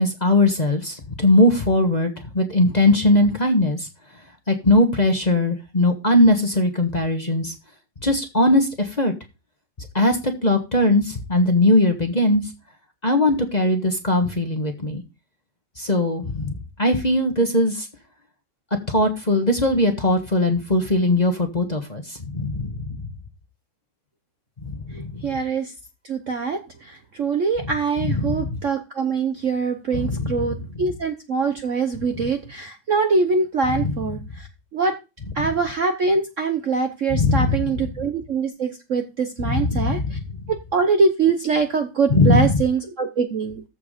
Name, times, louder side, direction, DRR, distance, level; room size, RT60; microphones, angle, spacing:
voice 1, 0.0-3.9 4.5-7.5 8.0-9.1 9.9-12.4 13.0-15.0 15.8-17.9 18.9-23.0 24.6-25.1 28.0-28.4 29.9-30.3 33.8-33.9 37.1-37.6 39.4-40.1 42.1-42.6, left 1 dB, 25° left, 4 dB, 1.4 m, -20 dB
voice 2, 24.9-25.7 26.0-35.0 35.3-40.2 40.5-43.6, right 4 dB, 50° right, 6 dB, 1.1 m, -23 dB
14.0 x 4.7 x 5.1 m, 0.28 s
omnidirectional pair, 2.2 m